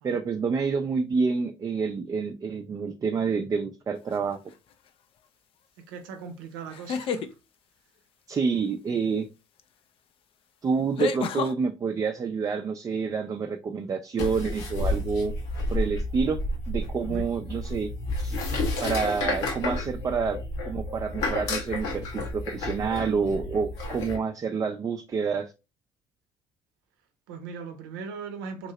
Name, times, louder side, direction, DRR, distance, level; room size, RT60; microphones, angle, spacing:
voice 1, 0.0-4.4 8.3-9.3 10.6-15.3 15.7-16.4 16.7-17.9 18.2-18.4 18.8-20.4 20.7-25.5, right 5 dB, 30° right, 0.4 m, -28 dB
sound 1, 4.1-4.5 6.7-7.3 9.6-9.7 11.0-11.5, left 6 dB, 55° left, 0.4 m, -30 dB
voice 2, 5.8-7.3 17.0-17.2 27.3-28.7, right 5 dB, 90° right, 0.6 m, -39 dB
sound 2, 14.2-24.2, left 2 dB, 75° left, 0.9 m, -31 dB
2.9 x 2.7 x 2.9 m
hypercardioid pair, 65°, 11 cm